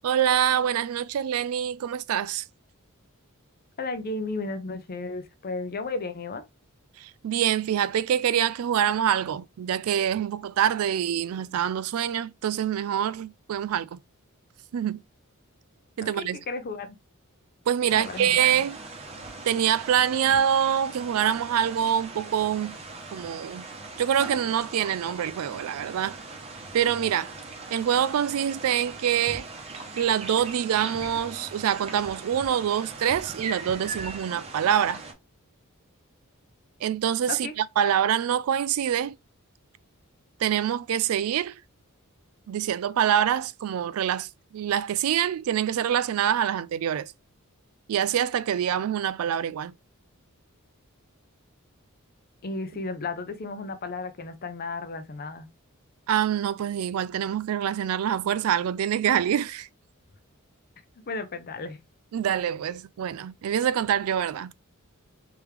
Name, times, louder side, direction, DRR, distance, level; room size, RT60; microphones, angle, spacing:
voice 1, 0.0-2.4 7.0-14.0 14.7-15.0 16.0-16.4 17.7-18.8 19.4-22.8 23.1-23.6 24.0-26.2 26.7-27.3 27.7-29.5 30.0-35.0 36.8-39.2 40.4-41.6 42.5-44.3 44.5-47.1 47.9-49.7 56.1-59.7 62.1-64.5, right 9 dB, 75° right, 0.3 m, -25 dB
voice 2, 3.8-6.4 16.0-17.0 17.8-18.6 37.3-37.5 52.4-55.5 61.1-61.8, left 3 dB, 45° left, 0.6 m, -34 dB
sound 1, 17.9-35.1, right 3 dB, 30° right, 0.8 m, -40 dB
3.5 x 3.1 x 3.2 m
head